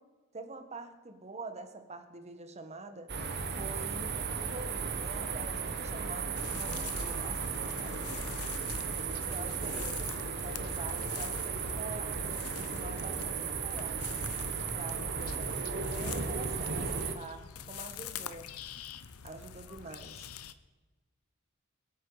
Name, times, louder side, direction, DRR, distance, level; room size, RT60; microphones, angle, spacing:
voice 1, 0.3-3.1 3.5-8.3 9.3-14.0 14.7-18.5 19.2-20.2, right 2 dB, 30° right, 8 dB, 1.5 m, -46 dB
sound 1, 3.1-17.1, right 5 dB, 50° right, 1.3 m, -35 dB
sound 2, 6.3-20.5, left 8 dB, 85° left, 0.8 m, -45 dB
22.5 x 8.9 x 5.0 m, 1.2 s
head